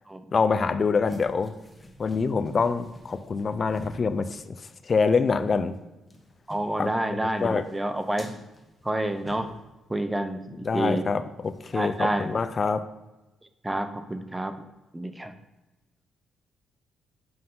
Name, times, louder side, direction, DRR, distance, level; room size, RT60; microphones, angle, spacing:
voice 1, 0.3-1.5 2.0-4.6 4.9-5.7 6.8-6.9 7.4-7.6 10.6-12.8, left 5 dB, 40° left, 12 dB, 0.5 m, -25 dB
sound 1, 1.0-5.1 5.3-5.4 5.8-9.8 11.4-12.4, left 1 dB, 15° left, 1.1 m, -49 dB
voice 2, 6.5-8.3 8.8-9.5 9.9-11.1 11.7-12.3 13.6-14.5 14.9-15.3, right 1 dB, 15° right, 9 dB, 0.7 m, -28 dB
7.8 x 5.3 x 3.8 m, 1.1 s
cardioid pair, 90°, 0 cm